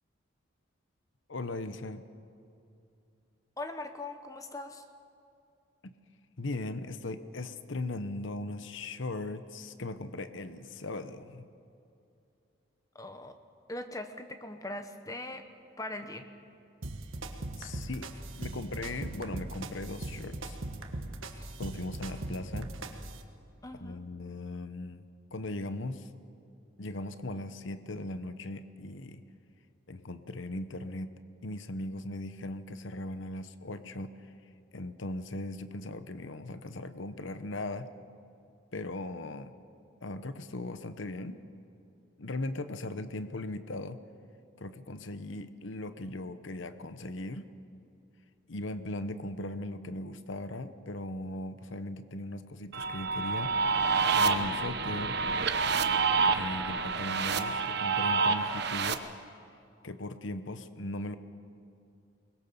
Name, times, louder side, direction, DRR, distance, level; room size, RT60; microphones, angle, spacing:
voice 1, 1.3-2.0 5.8-5.9 6.4-11.5 17.6-20.6 21.6-22.7 23.8-25.0 25.3-26.1 26.8-29.2 29.9-31.1 31.4-34.1 34.7-37.9 38.7-39.5 40.0-41.4 42.2-44.0 44.6-47.5 48.5-55.2 56.3-59.0 59.8-61.2, left 2 dB, 65° left, 11 dB, 0.9 m, -38 dB
voice 2, 3.6-4.9 12.9-13.3 13.7-15.4 15.8-16.3 21.3-21.5 23.6-24.0, left 2 dB, 15° left, 7 dB, 1.1 m, -40 dB
sound 1, 16.8-23.2, right 2 dB, 75° right, 1.5 m, -40 dB
sound 2, 52.7-58.9, right 5 dB, 50° right, 1.0 m, -28 dB
22.5 x 21.0 x 7.0 m, 2.6 s
head